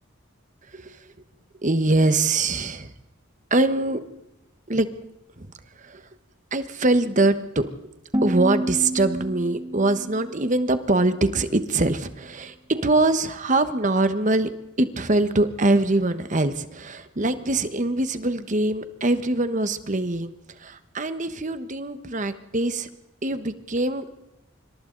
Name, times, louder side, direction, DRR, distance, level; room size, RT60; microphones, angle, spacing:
voice 1, 0.7-1.1 1.6-2.9 3.5-4.0 4.7-4.9 5.4-5.5 5.8-6.1 6.5-7.9 8.2-14.5 14.8-20.3 20.6-22.9 23.2-24.1, right 2 dB, 40° right, 11 dB, 1.3 m, -23 dB
sound 1, 8.1-11.1, right 1 dB, 20° right, 1.5 m, -30 dB
27.0 x 25.0 x 4.0 m, 0.91 s
head